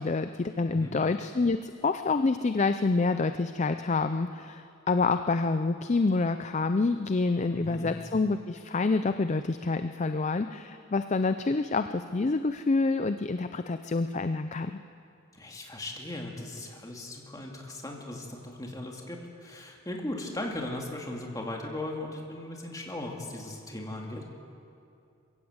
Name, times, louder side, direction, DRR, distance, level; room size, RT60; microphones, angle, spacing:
voice 1, 0.0-14.8, left 3 dB, 35° left, 10 dB, 0.5 m, -27 dB
voice 2, 7.5-7.9 15.3-24.3, left 1 dB, 15° left, 0 dB, 2.4 m, -38 dB
22.0 x 16.0 x 8.0 m, 2.6 s
head